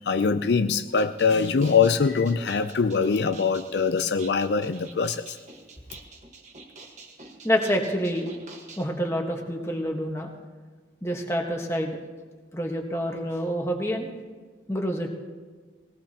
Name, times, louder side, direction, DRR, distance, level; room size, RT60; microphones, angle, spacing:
voice 1, 0.0-5.4, left 5 dB, 70° left, 10 dB, 0.4 m, -23 dB
sound 1, 0.9-8.8, right 4 dB, 40° right, 1.4 m, -47 dB
voice 2, 7.4-8.3 8.8-10.3 11.0-12.0 12.5-14.1 14.7-15.1, equal, 15° left, 1 dB, 1.3 m, -27 dB
19.5 x 17.5 x 2.9 m, 1.5 s
head